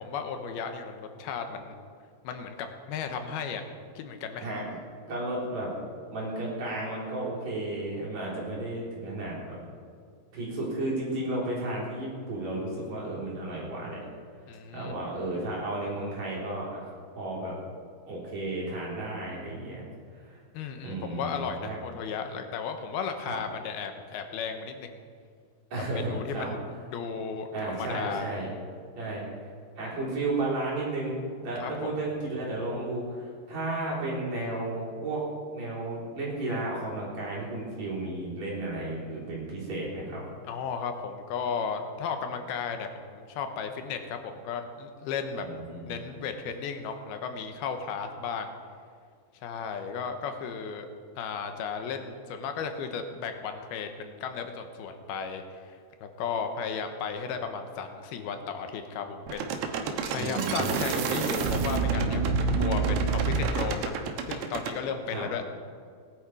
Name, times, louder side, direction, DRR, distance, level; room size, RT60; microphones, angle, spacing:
voice 1, 0.0-1.7 2.2-3.6 4.0-4.5 14.5-15.0 20.5-25.0 25.7-28.3 31.6-31.9 40.5-45.5 45.9-48.5 49.4-50.9 51.2-63.9 64.3-65.4, left 6 dB, 85° left, 6 dB, 3.0 m, -35 dB
voice 2, 5.1-5.7 6.1-9.6 10.3-14.0 14.7-16.9 17.1-17.6 18.1-19.9 20.1-20.4 20.8-21.8 23.2-23.4 25.7-26.5 27.5-28.5 29.0-29.5 29.8-31.1 31.4-35.3 35.5-40.2 45.4-46.0 60.1-60.8 65.1-65.2, right 2 dB, 45° right, -6 dB, 5.0 m, -33 dB
sound 1, 59.3-64.8, right 4 dB, 85° right, 3.0 m, -28 dB
18.5 x 11.0 x 4.9 m, 2.1 s
omnidirectional pair, 4.3 m